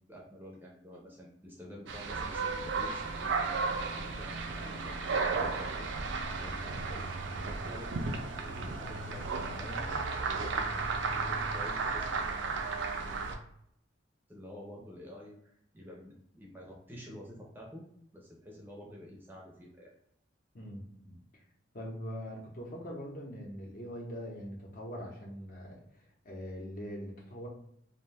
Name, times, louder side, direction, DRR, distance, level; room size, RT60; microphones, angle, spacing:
voice 1, 0.1-5.9 6.4-9.9 10.2-10.8 11.1-12.1 14.3-17.8 18.1-19.9, equal, 10° right, -2 dB, 0.5 m, -49 dB
sound 1, 1.9-13.4, right 4 dB, 65° right, 0.4 m, -34 dB
voice 2, 20.5-21.2 21.7-25.8 26.2-27.5, equal, 45° left, -2 dB, 0.8 m, -42 dB
2.6 x 2.2 x 3.2 m, 0.73 s
head